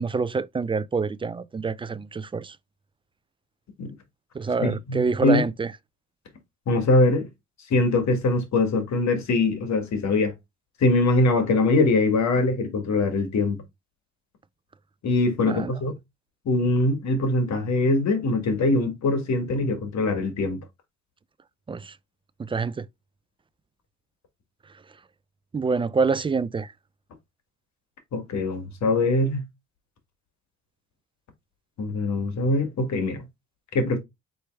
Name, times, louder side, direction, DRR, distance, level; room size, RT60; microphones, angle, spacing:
voice 1, 0.0-2.6 4.3-5.7 15.5-15.7 21.7-22.0 22.4-22.9 25.5-26.7, right 4 dB, 20° right, 0.3 m, -26 dB
voice 2, 4.6-5.4 6.7-7.3 7.7-10.3 10.8-13.6 15.0-15.9 16.4-20.6 28.1-29.4 31.8-33.2 33.7-34.0, left 2 dB, 65° left, 1.7 m, -22 dB
4.4 x 3.4 x 3.3 m
cardioid pair, 90°, 30 cm